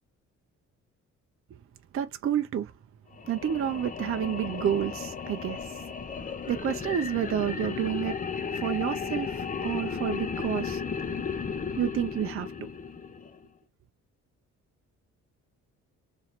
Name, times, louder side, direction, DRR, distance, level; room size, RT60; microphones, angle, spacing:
voice 1, 1.9-2.7 3.3-5.8 6.5-8.1 8.5-10.8 11.8-12.5, right 9 dB, 45° right, 0.5 m, -29 dB
sound 1, 3.1-13.5, left 6 dB, 30° left, 0.7 m, -35 dB
3.1 x 2.8 x 4.0 m
cardioid pair, 90°, 30 cm